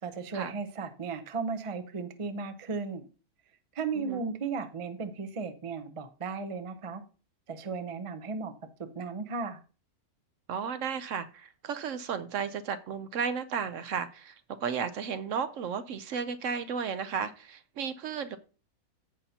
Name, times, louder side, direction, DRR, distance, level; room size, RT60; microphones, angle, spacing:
voice 1, 0.0-3.1 3.7-7.0 7.5-8.5 8.8-9.6, right 5 dB, 40° right, 0.5 m, -35 dB
voice 2, 4.0-4.3 10.5-18.4, right 6 dB, 65° right, 0.9 m, -34 dB
14.5 x 5.6 x 2.8 m
omnidirectional pair, 1.6 m